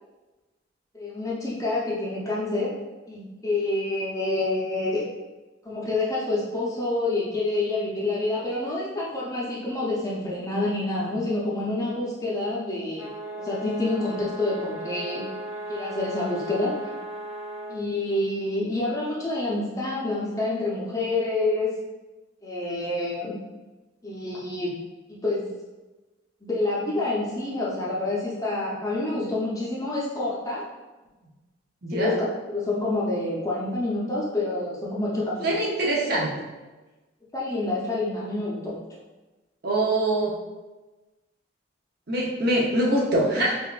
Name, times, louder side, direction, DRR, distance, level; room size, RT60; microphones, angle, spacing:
voice 1, 0.9-2.7 3.1-5.0 5.6-13.1 13.4-15.2 15.7-16.7 17.7-21.7 22.4-23.4 24.0-24.7 25.1-25.4 26.4-30.6 31.9-32.2 32.5-35.6 37.3-38.8, left 2 dB, 15° left, -6 dB, 0.6 m, -27 dB
sound 1, 12.9-17.8, right 1 dB, 10° right, 1.1 m, -36 dB
voice 2, 31.8-32.2 35.4-36.3 39.6-40.3 42.1-43.5, right 1 dB, 50° right, -4 dB, 0.8 m, -23 dB
5.0 x 2.5 x 2.4 m, 1.2 s
head